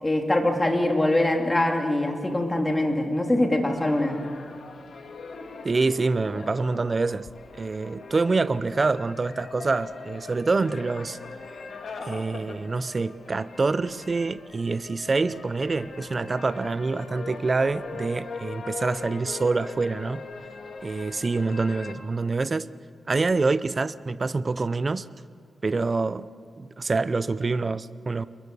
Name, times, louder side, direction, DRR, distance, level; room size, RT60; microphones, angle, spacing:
voice 1, 0.0-4.2, left 1 dB, 20° left, 2 dB, 2.9 m, -23 dB
sound 1, 3.6-21.9, left 4 dB, 70° left, 2.4 m, -41 dB
voice 2, 5.6-7.3 7.6-11.2 12.0-20.2 20.8-22.7 23.1-25.1 25.6-26.3 26.6-28.3, right 3 dB, 35° right, 15 dB, 0.7 m, -26 dB
28.5 x 22.0 x 6.9 m, 2.3 s
wide cardioid pair, 110°, 0 cm